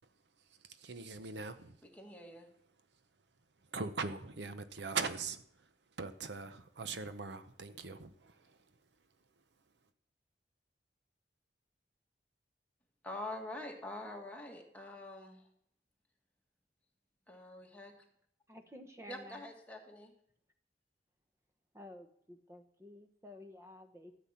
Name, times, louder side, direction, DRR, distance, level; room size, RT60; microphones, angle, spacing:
voice 1, 0.6-1.8 3.7-5.7 6.0-8.6, right 4 dB, 75° right, 10 dB, 0.8 m, -41 dB
voice 2, 1.9-2.5 13.0-15.5 17.3-17.9 19.1-20.1, left 1 dB, 10° left, 0 dB, 1.9 m, -45 dB
voice 3, 18.5-19.5 21.7-24.1, left 1 dB, 15° right, 6 dB, 1.2 m, -52 dB
13.5 x 8.0 x 5.7 m, 0.70 s
head